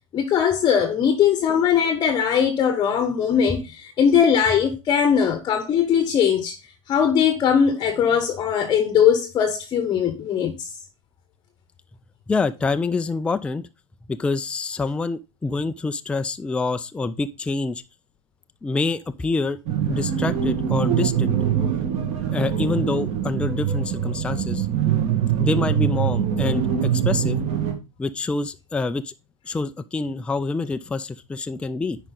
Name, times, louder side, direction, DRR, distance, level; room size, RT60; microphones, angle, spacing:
voice 1, 0.1-6.6 6.9-10.7, left 8 dB, 25° left, 1.0 m, -20 dB
voice 2, 12.3-13.7 14.1-17.8 18.6-19.6 19.9-21.4 22.3-24.7 25.4-27.4 28.0-29.1 29.5-32.0, left 3 dB, 5° left, 0.4 m, -26 dB
sound 1, 19.7-27.7, right 9 dB, 35° right, 1.8 m, -23 dB
10.0 x 5.0 x 3.9 m
figure-of-eight pair, 100°, 17 cm